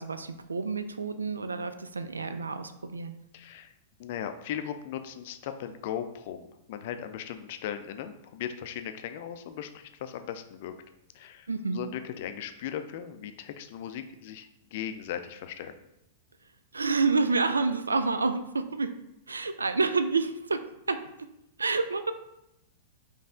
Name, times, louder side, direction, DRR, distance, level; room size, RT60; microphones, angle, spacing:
voice 1, 0.0-3.2 11.5-11.8 16.7-18.9 19.3-21.3 21.6-22.1, right 4 dB, 75° right, 10 dB, 0.3 m, -29 dB
voice 2, 3.3-3.7 4.0-10.7 11.1-11.5 11.7-15.7, left 9 dB, 50° left, 8 dB, 0.4 m, -38 dB
4.2 x 3.2 x 3.5 m, 0.84 s
figure-of-eight pair, 100°, 0 cm